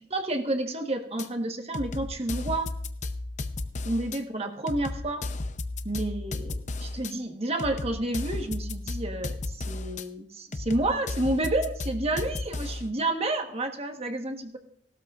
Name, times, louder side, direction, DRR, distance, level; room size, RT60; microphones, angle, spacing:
voice 1, 0.1-2.7 3.8-5.3 5.8-14.6, right 2 dB, 35° right, 5 dB, 1.3 m, -30 dB
sound 1, 1.2-1.3 1.7-4.2 4.7-7.1 7.6-10.1 10.5-12.9, left 2 dB, 45° left, 0.7 m, -34 dB
18.0 x 12.5 x 2.5 m, 0.67 s
head